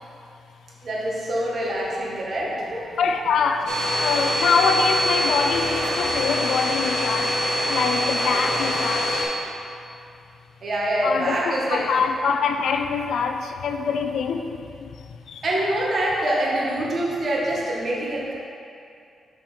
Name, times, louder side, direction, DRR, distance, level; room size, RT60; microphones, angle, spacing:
voice 1, 0.8-2.9 8.2-8.6 10.6-11.9 15.4-18.3, right 1 dB, 50° right, -4 dB, 1.5 m, -25 dB
voice 2, 3.0-3.7 4.0-7.3 7.7-9.2 11.0-14.7 15.3-15.4, left 5 dB, 75° left, 6 dB, 0.4 m, -24 dB
Domestic sounds home sounds, 3.7-9.2, equal, 75° right, 1.4 m, -24 dB
6.3 x 5.7 x 4.4 m, 2.5 s
cardioid pair, 110°, 0 cm